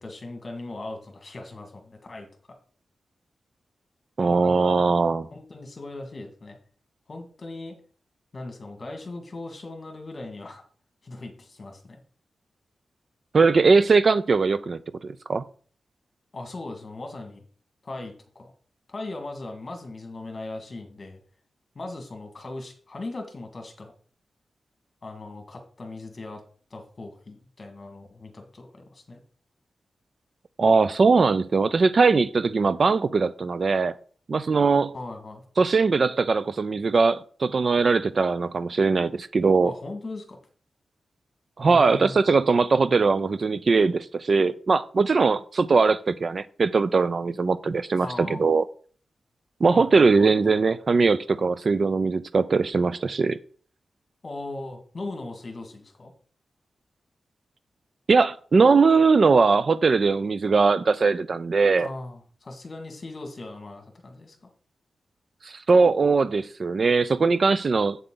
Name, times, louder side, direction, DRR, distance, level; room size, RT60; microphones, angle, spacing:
voice 1, 0.0-2.3 4.2-4.8 5.3-6.6 7.1-7.8 8.3-10.6 11.0-12.0 16.3-17.4 17.8-18.5 18.9-21.2 21.8-23.9 25.0-26.4 26.7-29.2 34.9-35.4 39.6-40.4 41.6-42.2 48.0-48.5 49.7-50.3 54.2-56.1 61.8-64.5, left 2 dB, 35° left, 2.0 m, -38 dB
voice 2, 4.2-5.3 13.3-15.4 30.6-33.9 34.3-34.9 35.6-39.7 41.6-48.6 49.6-53.4 58.1-61.9 65.4-68.0, right 4 dB, 45° right, 0.4 m, -20 dB
8.1 x 7.5 x 3.8 m
wide cardioid pair, 150°, 0 cm